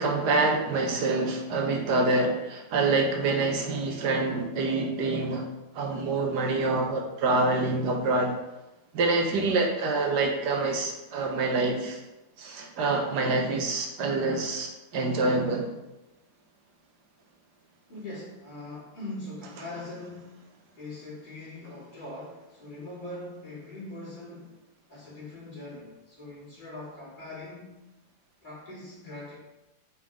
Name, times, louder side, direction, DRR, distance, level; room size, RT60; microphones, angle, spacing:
voice 1, 0.0-5.5 5.7-8.3 8.9-12.0 12.4-15.7, right 3 dB, 85° right, 2 dB, 1.5 m, -26 dB
voice 2, 17.9-20.5 20.7-24.6 24.9-27.8 28.4-29.4, left 2 dB, 30° left, -8 dB, 2.8 m, -41 dB
6.4 x 5.4 x 3.6 m, 0.99 s
omnidirectional pair, 1.7 m